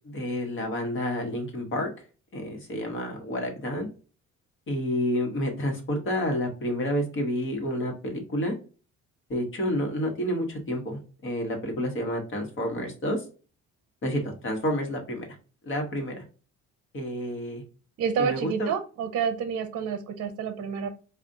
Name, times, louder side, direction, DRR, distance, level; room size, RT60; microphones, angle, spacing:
voice 1, 0.0-1.9 2.3-3.9 4.7-8.5 9.3-13.2 14.0-15.3 15.6-16.2 16.9-17.6 18.2-18.7, equal, 40° left, 3 dB, 1.2 m, -29 dB
voice 2, 18.0-20.9, right 7 dB, 50° right, 8 dB, 0.7 m, -29 dB
4.9 x 2.4 x 2.6 m, 0.36 s
cardioid pair, 155°, 30 cm